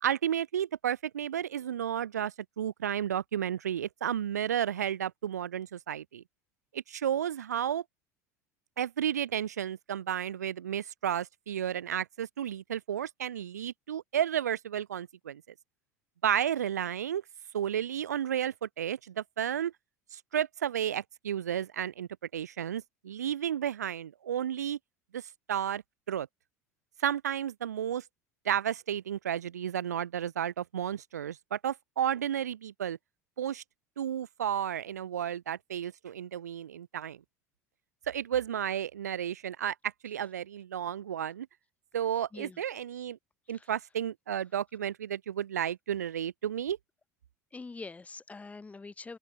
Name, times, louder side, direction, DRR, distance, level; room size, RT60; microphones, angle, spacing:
voice 1, 0.0-6.2 6.7-7.8 8.8-15.4 16.2-17.2 17.5-19.7 20.1-24.8 25.1-25.2 25.5-25.8 26.1-26.3 27.0-28.0 28.4-33.0 33.4-33.6 34.0-37.2 38.1-41.5 41.9-43.2 43.5-46.8, right 9 dB, 85° right, 0.7 m, -32 dB
voice 2, 47.5-49.2, left 3 dB, 15° left, 1.2 m, -44 dB
open air
hypercardioid pair, 75°, 9 cm